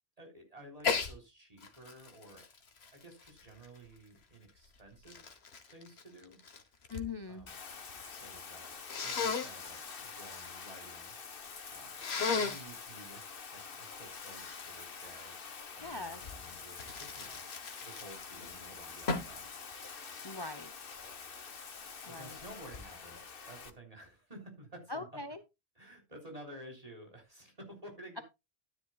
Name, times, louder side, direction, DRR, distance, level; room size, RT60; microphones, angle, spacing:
voice 1, 0.2-2.5 2.9-5.2 5.7-6.4 7.3-7.6 8.1-8.7 9.0-11.1 11.7-12.1 12.3-13.2 13.5-15.4 15.8-17.4 17.8-19.5 22.1-25.0 25.8-28.2, right 1 dB, 35° right, 2 dB, 4.0 m, -53 dB
Sneeze, 0.8-1.1 1.6-4.0 4.7-7.1 7.4-8.0 8.9-9.5 12.0-12.7 16.2-18.5 19.1-19.4, left 5 dB, 85° left, 1.5 m, -36 dB
voice 2, 6.9-7.5 15.8-16.2 20.2-20.7 22.1-22.4 24.9-25.4, left 3 dB, 25° left, 9 dB, 0.8 m, -41 dB
Bathtub (filling or washing), 7.5-23.7, left 5 dB, 65° left, 1.3 m, -47 dB
12.5 x 10.0 x 2.3 m, 0.24 s
omnidirectional pair, 1.0 m